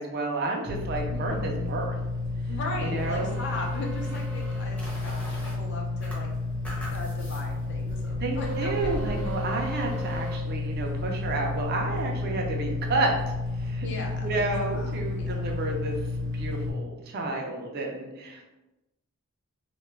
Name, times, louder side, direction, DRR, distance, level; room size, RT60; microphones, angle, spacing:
voice 1, 0.0-2.0 2.8-3.4 8.1-13.9 14.2-16.0 16.2-18.4, right 2 dB, 50° right, 1 dB, 0.4 m, -31 dB
sound 1, 0.7-16.7, left 2 dB, 85° left, 0.8 m, -31 dB
voice 2, 1.1-1.7 2.5-6.3 6.9-9.0 13.8-14.4 14.7-14.9 15.2-15.5, left 2 dB, 55° left, 0 dB, 0.5 m, -38 dB
sound 2, 2.9-5.6 6.0-7.5 7.9-8.0 8.4-10.4, right 3 dB, 5° left, 0.6 m, -40 dB
2.3 x 2.1 x 3.1 m, 0.98 s
head